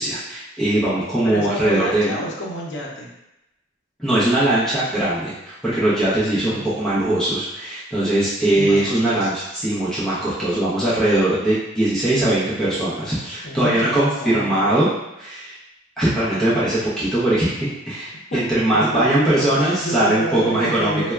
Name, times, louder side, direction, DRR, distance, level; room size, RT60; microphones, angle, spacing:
voice 1, 0.0-2.1 4.0-9.3 9.6-14.9 15.2-15.6 16.0-21.0, right 1 dB, ahead, -11 dB, 0.8 m, -20 dB
voice 2, 1.2-3.1 6.4-6.6 8.5-9.5 13.4-14.6 18.3-18.4 18.8-19.3 19.8-21.1, equal, 65° left, -3 dB, 0.7 m, -28 dB
4.3 x 2.2 x 2.3 m, 0.91 s
head